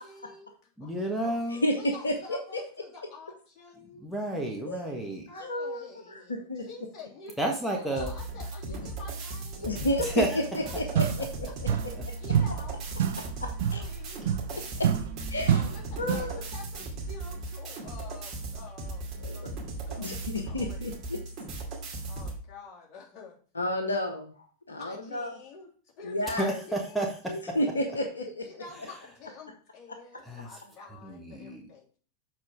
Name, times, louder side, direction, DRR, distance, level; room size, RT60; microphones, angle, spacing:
voice 1, 0.0-1.4 1.7-4.0 5.3-9.9 10.4-11.0 12.1-12.8 13.7-14.5 15.5-20.8 22.0-23.4 24.7-25.7 26.0-27.0 27.7-27.8 28.4-32.0, left 4 dB, 30° left, -4 dB, 3.0 m, -48 dB
voice 2, 0.8-1.6 4.0-5.3 7.4-8.1 10.0-10.4 26.4-27.6 30.2-30.5 31.0-31.6, right 1 dB, ahead, 1 dB, 1.4 m, -31 dB
voice 3, 1.5-2.6 4.6-4.8 5.3-5.8 6.3-6.7 9.6-11.9 13.4-13.8 14.6-14.9 15.3-15.5 16.0-16.4 19.2-19.5 20.0-21.2 23.5-25.3 26.0-26.6 27.3-28.5, left 1 dB, 75° left, 5 dB, 1.0 m, -31 dB
sound 1, 8.0-22.4, right 2 dB, 35° right, 2.5 m, -37 dB
sound 2, 10.6-10.7 10.9-12.0 12.3-16.4, right 9 dB, 55° right, 0.6 m, -29 dB
7.3 x 4.5 x 4.7 m, 0.42 s
figure-of-eight pair, 90°, 0 cm